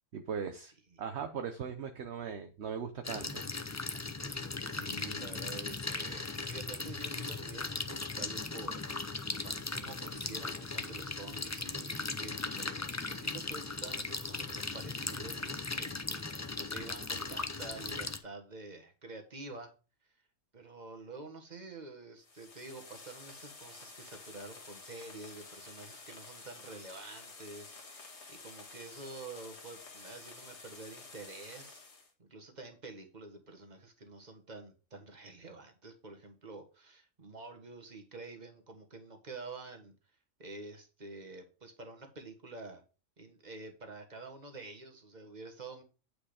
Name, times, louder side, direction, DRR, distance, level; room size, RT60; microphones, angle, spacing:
voice 1, 0.1-0.7 1.0-3.4 4.2-4.4, right 7 dB, 60° right, 6 dB, 1.0 m, -39 dB
voice 2, 0.6-1.0 4.7-19.7 20.5-31.8 32.2-39.9 40.4-42.8 43.2-45.8, right 3 dB, 35° right, 5 dB, 1.6 m, -48 dB
sound 1, 3.0-18.2, left 3 dB, 25° left, 0.4 m, -38 dB
sound 2, 22.2-32.1, left 3 dB, 60° left, 1.8 m, -51 dB
8.8 x 5.0 x 5.0 m, 0.33 s
omnidirectional pair, 1.3 m